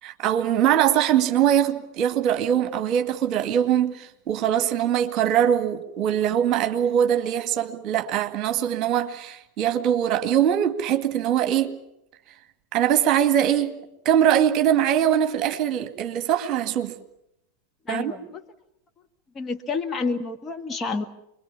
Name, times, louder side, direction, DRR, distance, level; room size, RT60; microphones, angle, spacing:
voice 1, 0.0-11.7 12.7-13.8 14.0-16.9 17.9-18.1, right 10 dB, 35° right, 8 dB, 2.1 m, -22 dB
voice 2, 17.9-18.4 19.4-21.1, left 4 dB, 20° left, 5 dB, 1.8 m, -29 dB
27.5 x 22.0 x 7.3 m, 0.83 s
figure-of-eight pair, 90°, 0 cm